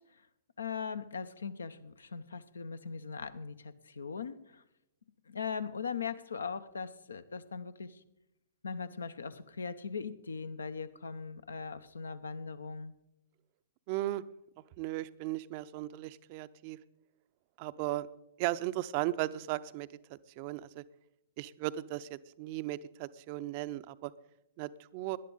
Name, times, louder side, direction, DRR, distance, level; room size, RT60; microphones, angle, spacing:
voice 1, 0.6-4.6 5.3-8.0 8.6-13.0, left 5 dB, 75° left, 13 dB, 0.8 m, -40 dB
voice 2, 13.9-14.2 14.8-16.8 17.6-18.1 18.4-20.8 21.4-24.1 24.6-25.2, right 16 dB, 40° right, 15 dB, 0.5 m, -36 dB
18.0 x 11.0 x 3.9 m, 0.86 s
figure-of-eight pair, 110°, 0 cm